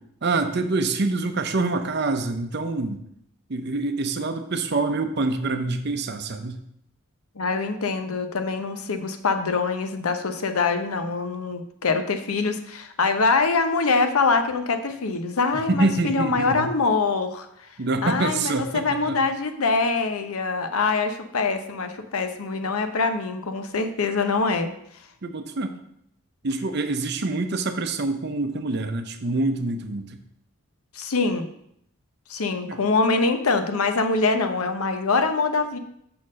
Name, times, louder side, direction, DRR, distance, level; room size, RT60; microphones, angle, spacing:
voice 1, 0.2-3.0 3.5-6.6 15.5-16.7 17.8-19.2 25.2-25.7 26.4-30.2 32.7-32.8, right 3 dB, 50° right, 8 dB, 0.6 m, -26 dB
voice 2, 7.4-17.5 18.0-24.7 30.9-31.5 32.3-35.8, left 4 dB, 80° left, 8 dB, 0.8 m, -24 dB
5.8 x 4.3 x 6.2 m, 0.72 s
head